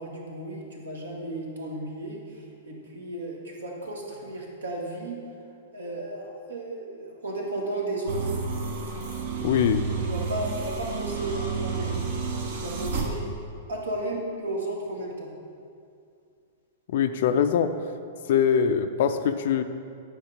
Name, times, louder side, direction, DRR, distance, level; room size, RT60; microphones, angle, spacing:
voice 1, 0.0-5.2 5.7-8.4 10.0-12.0 12.5-13.4 13.7-15.3, right 1 dB, 70° right, -1 dB, 1.5 m, -34 dB
sound 1, 8.1-13.1, right 5 dB, 55° right, 1.0 m, -31 dB
voice 2, 9.4-9.8 16.9-17.7 18.3-19.6, left 8 dB, 55° left, 9 dB, 0.4 m, -23 dB
8.8 x 5.1 x 5.0 m, 2.4 s
figure-of-eight pair, 105°, 0 cm